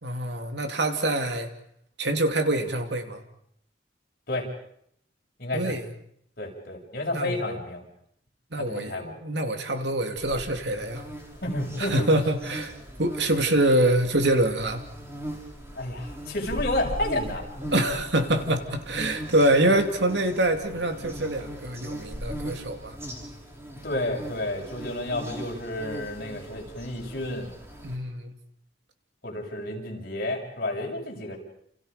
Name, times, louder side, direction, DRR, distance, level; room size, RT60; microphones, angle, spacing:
voice 1, 0.0-1.5 2.0-3.2 5.5-5.9 7.1-7.6 8.5-11.0 11.8-14.8 17.7-23.0 27.8-28.3, right 1 dB, 70° right, 6 dB, 2.8 m, -25 dB
voice 2, 5.4-5.7 6.4-7.8 8.6-9.1 11.4-12.1 15.7-17.5 23.8-27.5 29.2-31.4, left 1 dB, 55° left, -1 dB, 7.4 m, -31 dB
sound 1, 10.2-28.0, equal, 15° right, 5.3 m, -39 dB
29.5 x 29.5 x 5.2 m, 0.68 s
head